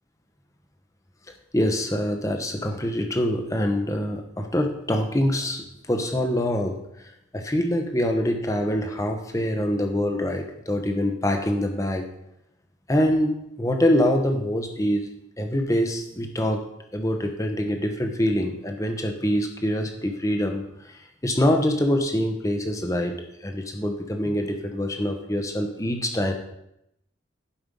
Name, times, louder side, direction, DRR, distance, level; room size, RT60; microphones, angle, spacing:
voice 1, 1.5-12.1 12.9-15.1 15.4-16.7 16.9-26.3, left 1 dB, 15° left, 4 dB, 1.0 m, -25 dB
11.5 x 5.5 x 5.3 m, 0.82 s
head